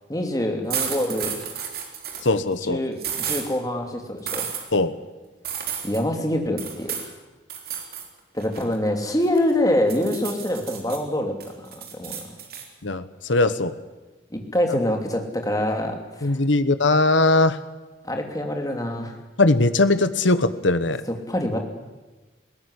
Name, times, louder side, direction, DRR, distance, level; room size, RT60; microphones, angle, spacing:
voice 1, 0.1-1.4 2.6-4.5 5.8-6.9 8.3-12.2 14.3-16.4 18.0-19.2 21.3-21.6, left 1 dB, 20° left, 3 dB, 2.9 m, -25 dB
sound 1, 0.7-2.3 3.0-3.4 4.3-4.6 5.4-6.0 6.6-7.1 7.5-8.1 8.4-9.5 9.9-11.0 11.4-12.6, right 8 dB, 50° right, 3.7 m, -31 dB
voice 2, 2.2-2.8 4.7-4.9 12.8-13.7 14.7-14.8 16.2-17.6 19.4-21.0, left 2 dB, 75° left, 12 dB, 1.2 m, -20 dB
20.5 x 17.5 x 9.8 m, 1.2 s
head